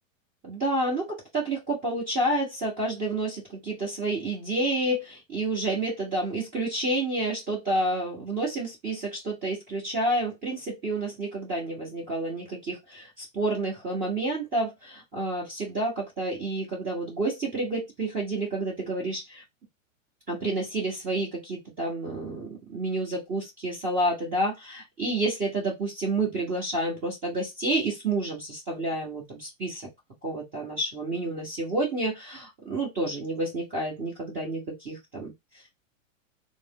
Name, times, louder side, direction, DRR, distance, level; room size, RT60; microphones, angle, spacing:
voice 1, 0.4-19.4 20.3-29.9 30.2-35.3, right 2 dB, 20° right, 1.1 m, -29 dB
3.4 x 2.0 x 3.5 m
supercardioid pair, 155°, 40 cm